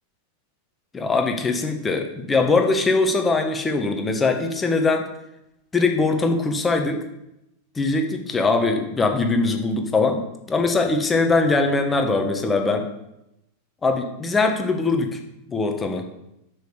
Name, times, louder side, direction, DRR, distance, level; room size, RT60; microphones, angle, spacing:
voice 1, 0.9-5.1 5.7-7.0 7.7-12.9 13.8-15.2 15.5-16.1, left 3 dB, 15° left, 5 dB, 1.2 m, -21 dB
6.2 x 5.3 x 6.5 m, 0.86 s
figure-of-eight pair, 90°, 0 cm